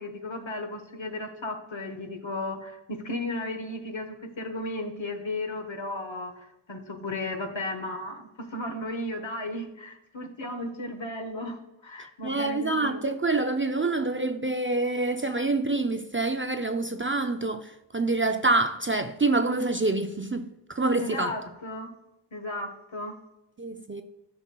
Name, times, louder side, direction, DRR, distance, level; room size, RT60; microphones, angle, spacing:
voice 1, 0.0-13.0 21.0-21.9 22.3-23.1, left 1 dB, 65° left, 1.2 m, -35 dB
voice 2, 12.2-21.3 23.6-24.0, right 2 dB, 25° right, 0.4 m, -26 dB
12.0 x 5.8 x 2.3 m
wide cardioid pair, 45°, 49 cm